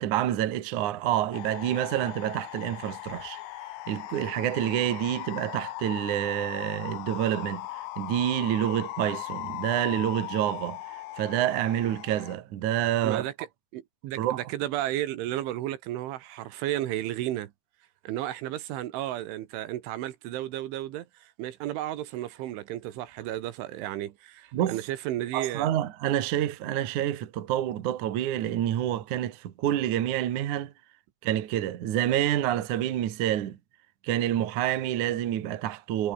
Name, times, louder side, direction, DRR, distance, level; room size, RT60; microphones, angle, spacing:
voice 1, 0.0-3.4 3.9-13.3 14.2-14.4 24.5-24.8 25.3-30.7 31.2-33.6 34.0-36.1, right 12 dB, 60° right, 2.1 m, -28 dB
sound 1, 1.3-12.4, left 17 dB, 85° left, 3.8 m, -39 dB
voice 2, 13.0-13.5 13.7-17.5 18.1-25.7, right 14 dB, 75° right, 3.8 m, -33 dB
omnidirectional pair, 5.7 m